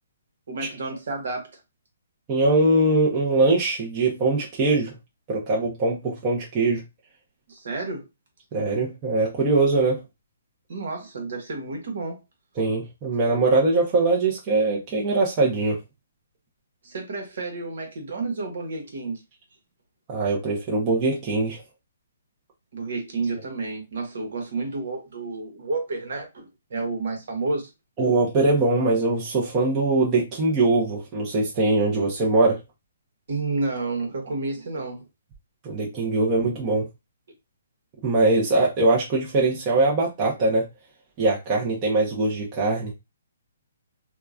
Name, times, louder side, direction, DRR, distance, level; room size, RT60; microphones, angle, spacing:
voice 1, 0.5-1.5 7.5-8.1 10.7-12.2 16.8-19.2 22.7-27.6 33.3-35.1, right 3 dB, 65° right, 1.2 m, -30 dB
voice 2, 2.3-5.0 5.3-6.8 8.5-10.0 12.6-15.8 20.1-21.6 28.0-32.6 35.6-36.9 38.0-40.6 41.2-42.9, right 2 dB, 25° right, 0.8 m, -22 dB
2.9 x 2.3 x 2.4 m
hypercardioid pair, 155°, 0 cm